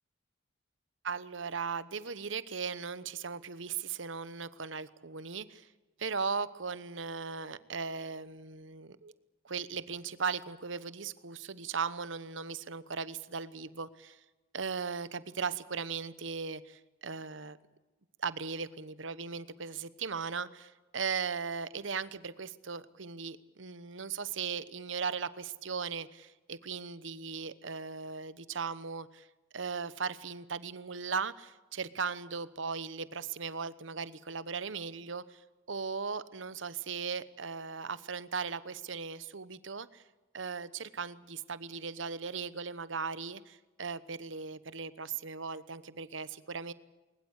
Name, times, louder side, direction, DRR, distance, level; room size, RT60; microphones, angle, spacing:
voice 1, 1.0-5.7 6.0-9.1 9.4-14.2 14.5-17.6 18.2-29.3 29.5-35.4 35.7-40.0 40.3-46.7, right 5 dB, 70° right, 15 dB, 1.1 m, -38 dB
21.0 x 20.5 x 8.3 m, 1.1 s
head